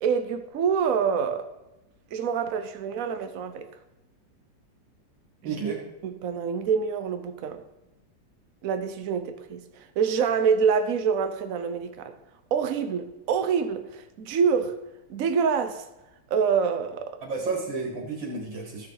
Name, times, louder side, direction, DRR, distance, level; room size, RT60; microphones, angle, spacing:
voice 1, 0.0-1.5 2.1-3.7 5.4-5.6 6.0-7.6 8.6-12.2 12.5-14.8 15.1-15.9 16.3-17.2, right 6 dB, 55° right, 1.1 m, -26 dB
voice 2, 5.4-5.8 17.2-18.9, right 4 dB, 85° right, 2.6 m, -31 dB
14.0 x 6.5 x 4.1 m
omnidirectional pair, 2.0 m